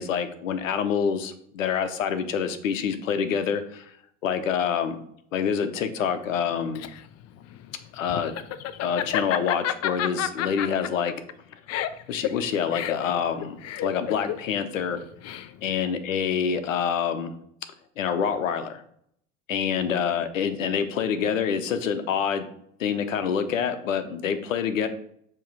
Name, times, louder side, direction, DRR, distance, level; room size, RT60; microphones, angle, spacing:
voice 1, 0.0-3.9 4.2-5.0 5.3-6.8 7.9-8.4 8.8-11.1 12.1-15.0 15.6-17.4 18.0-18.8 19.5-22.5 22.8-24.9, left 7 dB, 85° left, 10 dB, 0.8 m, -26 dB
Laughter, 6.4-15.8, left 11 dB, 40° left, 0.6 m, -31 dB
7.1 x 3.1 x 4.6 m, 0.67 s
hypercardioid pair, 75°, 38 cm